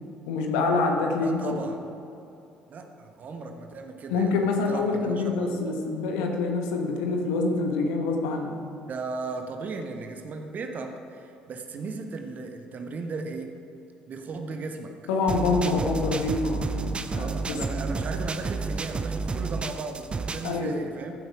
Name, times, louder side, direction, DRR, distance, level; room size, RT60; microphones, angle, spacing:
voice 1, 0.3-1.6 4.1-8.6 15.1-17.5 20.4-20.7, left 3 dB, 65° left, 3 dB, 1.3 m, -26 dB
voice 2, 1.2-1.8 2.7-4.3 4.7-5.7 8.9-13.5 14.1-14.9 17.2-21.1, right 3 dB, 40° right, 5 dB, 1.3 m, -36 dB
sound 1, 15.3-20.6, right 4 dB, 25° right, 0.6 m, -31 dB
14.5 x 7.8 x 4.9 m, 2.7 s
figure-of-eight pair, 50°, 4 cm